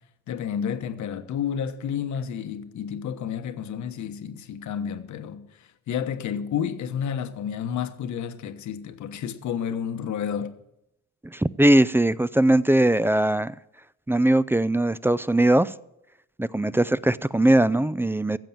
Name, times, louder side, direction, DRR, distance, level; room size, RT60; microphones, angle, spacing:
voice 1, 0.3-10.5, left 8 dB, 70° left, 1.2 m, -31 dB
voice 2, 11.3-13.5 14.1-15.7 16.4-18.4, right 1 dB, 10° right, 0.4 m, -20 dB
15.5 x 7.6 x 7.3 m
cardioid pair, 90°, 30 cm